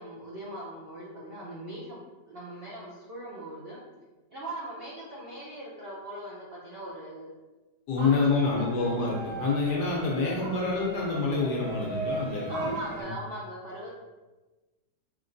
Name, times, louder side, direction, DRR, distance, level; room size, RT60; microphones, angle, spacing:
voice 1, 0.0-2.0 2.3-3.8 4.3-7.3 8.0-8.7 10.3-10.5 12.5-13.9, right 1 dB, 65° right, -6 dB, 0.6 m, -39 dB
voice 2, 7.9-12.8 13.0-13.1, left 3 dB, 70° left, -3 dB, 1.3 m, -27 dB
sound 1, 8.0-13.0, right 1 dB, 50° right, 2.0 m, -38 dB
4.4 x 3.5 x 2.6 m, 1.2 s
omnidirectional pair, 1.9 m